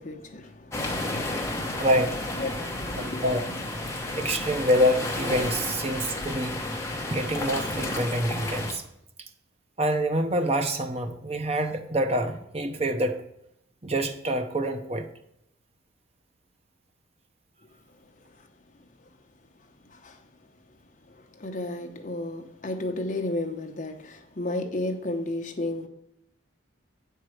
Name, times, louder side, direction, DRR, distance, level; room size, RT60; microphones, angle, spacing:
voice 1, 0.0-3.3 19.9-20.2 21.1-25.9, left 2 dB, 40° left, 0.9 m, -34 dB
sound 1, 0.7-8.7, left 1 dB, 15° left, 1.0 m, -32 dB
voice 2, 1.8-2.1 3.0-3.4 4.1-6.5 7.1-8.8 9.8-13.1 13.8-15.1, equal, 30° right, 0.7 m, -26 dB
8.6 x 4.6 x 6.4 m
head